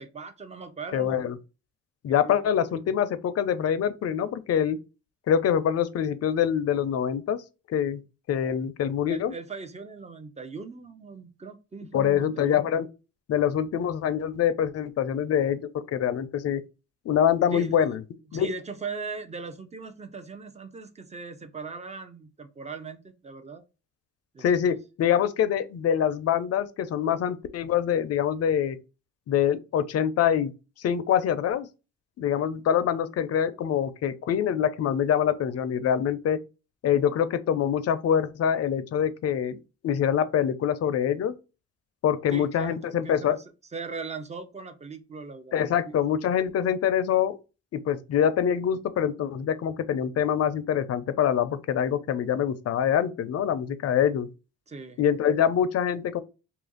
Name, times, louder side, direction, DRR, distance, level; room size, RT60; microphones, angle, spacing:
voice 1, 0.0-1.2 2.1-2.5 9.1-12.7 17.5-17.9 18.3-23.6 24.3-24.8 42.3-43.4 43.7-45.6 45.8-45.9 54.7-55.0, right 4 dB, 20° right, 0.6 m, -39 dB
voice 2, 0.9-1.4 2.0-4.8 5.3-7.4 7.7-8.0 8.3-9.3 11.9-12.9 13.3-16.6 17.1-18.0 18.3-18.5 24.4-28.8 29.3-30.5 30.8-31.7 32.2-36.4 36.8-39.6 39.8-41.3 42.0-43.4 45.5-47.4 47.7-54.3 55.0-56.2, left 9 dB, 55° left, 0.5 m, -25 dB
2.8 x 2.5 x 3.7 m
cardioid pair, 90°, 30 cm